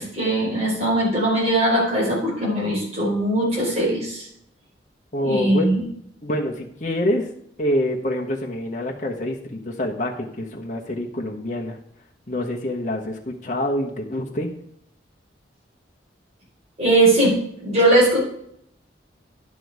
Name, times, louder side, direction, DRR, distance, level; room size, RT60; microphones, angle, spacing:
voice 1, 0.0-4.2 5.2-5.8 16.8-18.2, right 1 dB, 35° right, -5 dB, 4.7 m, -20 dB
voice 2, 5.1-5.7 6.2-7.3 7.6-11.8 12.3-14.5, left 1 dB, 40° left, 0 dB, 1.2 m, -26 dB
11.0 x 6.2 x 4.8 m, 0.71 s
head